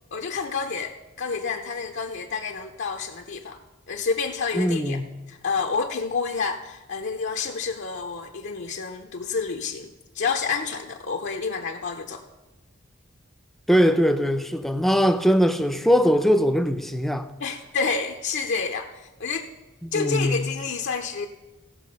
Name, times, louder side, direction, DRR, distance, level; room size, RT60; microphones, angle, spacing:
voice 1, 0.1-3.6 3.9-5.0 5.3-9.9 10.1-12.2 17.4-19.5 19.9-21.3, left 5 dB, 60° left, 0.6 m, -29 dB
voice 2, 4.5-5.1 13.7-17.3 19.8-20.5, equal, ahead, 0.5 m, -21 dB
16.0 x 6.0 x 5.3 m
head